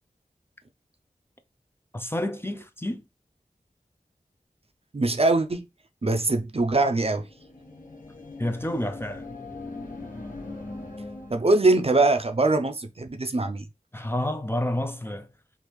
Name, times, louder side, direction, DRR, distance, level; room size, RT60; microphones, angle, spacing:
voice 1, 1.9-3.0 8.4-9.3 13.9-15.3, left 1 dB, 15° left, 0.4 m, -29 dB
voice 2, 4.9-5.7 6.0-7.3 11.3-13.7, right 2 dB, 40° right, 0.5 m, -22 dB
sound 1, 7.2-11.7, left 2 dB, 65° left, 1.1 m, -40 dB
3.4 x 2.4 x 3.1 m
wide cardioid pair, 45°, 15 cm